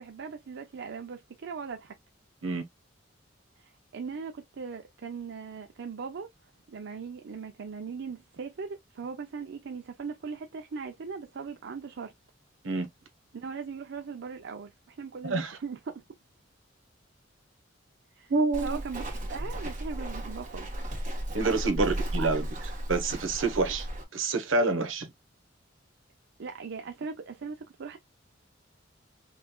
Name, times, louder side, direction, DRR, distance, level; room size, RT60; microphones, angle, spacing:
voice 1, 0.0-2.0 3.6-6.3 6.7-12.1 13.3-16.0 18.1-18.3 18.6-20.7 21.7-22.3 26.4-28.0, right 5 dB, 65° right, 0.5 m, -39 dB
voice 2, 15.2-15.6 18.3-18.8 21.3-22.4 22.9-25.1, right 3 dB, 80° right, 1.2 m, -27 dB
Walk footsteps, 18.5-24.0, right 1 dB, 40° right, 1.5 m, -35 dB
5.5 x 2.5 x 2.3 m
head